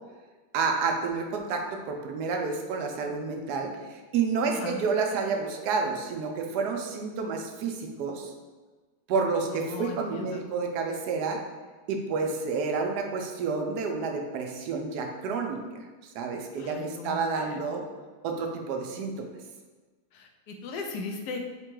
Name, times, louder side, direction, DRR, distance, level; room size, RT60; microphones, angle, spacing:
voice 1, 0.5-8.3 9.1-11.4 11.9-15.6 16.1-17.8 18.2-19.3, right 4 dB, 80° right, 3 dB, 1.2 m, -29 dB
voice 2, 4.5-4.8 9.5-10.4 16.6-17.6 20.1-21.4, left 3 dB, 85° left, 3 dB, 1.2 m, -38 dB
3.8 x 2.2 x 4.5 m, 1.4 s
omnidirectional pair, 1.7 m